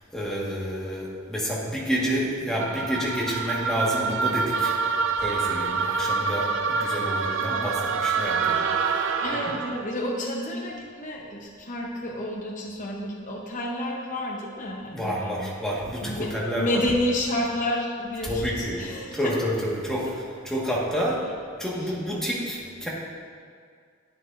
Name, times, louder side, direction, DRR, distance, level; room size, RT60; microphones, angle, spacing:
voice 1, 0.0-9.4 14.9-16.8 18.2-18.8 19.1-21.2 21.6-22.9, equal, 5° left, -5 dB, 1.5 m, -29 dB
sound 1, 2.6-9.8, right 5 dB, 65° right, 0.5 m, -26 dB
voice 2, 9.2-15.5 16.0-19.4 21.8-21.9, left 1 dB, 40° left, -2 dB, 0.8 m, -30 dB
11.0 x 9.5 x 2.6 m, 2.1 s
head